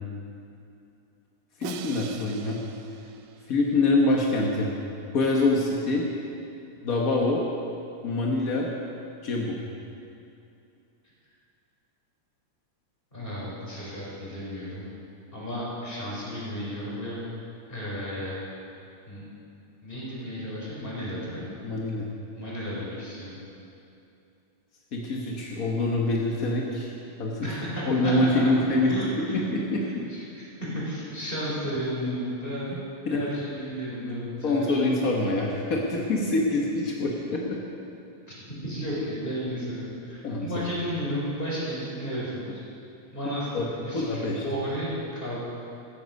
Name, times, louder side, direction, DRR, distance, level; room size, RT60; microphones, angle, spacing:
voice 1, 1.6-2.6 3.5-4.7 5.1-6.0 6.8-7.4 8.0-8.7 9.2-9.6 21.6-22.1 24.9-27.6 27.9-28.9 29.3-29.8 33.1-33.2 34.4-37.6 40.2-40.6 43.5-43.6 43.9-44.4, left 2 dB, 55° left, -2 dB, 1.0 m, -25 dB
Crash cymbal, 1.6-3.8, right 9 dB, 75° right, 1.9 m, -42 dB
voice 2, 13.1-14.9 15.3-17.3 17.7-18.4 19.1-19.3 19.8-21.4 22.3-23.3 27.4-28.4 28.9-29.4 30.1-32.8 33.1-34.8 38.6-42.6 43.1-45.4, equal, 15° left, -6 dB, 4.7 m, -33 dB
14.5 x 14.5 x 5.3 m, 2.7 s
omnidirectional pair, 3.4 m